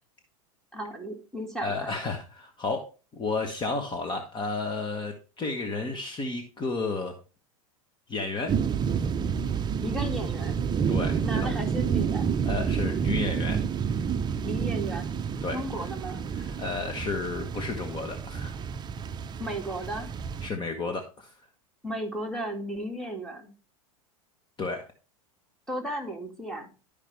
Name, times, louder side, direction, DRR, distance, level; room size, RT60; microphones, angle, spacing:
voice 1, 0.7-1.9 9.8-10.6 11.2-12.3 14.4-15.1 15.5-16.2 19.4-20.1 21.8-23.5 25.7-26.7, equal, 5° left, 3 dB, 2.2 m, -35 dB
voice 2, 1.6-7.1 8.1-8.5 10.9-11.5 12.4-13.6 15.4-15.6 16.3-18.6 20.4-21.3 24.6-24.8, left 3 dB, 25° left, 5 dB, 1.3 m, -32 dB
sound 1, 8.5-20.5, right 7 dB, 25° right, 0.6 m, -29 dB
12.0 x 5.1 x 3.4 m, 0.33 s
hypercardioid pair, 100°, 18 cm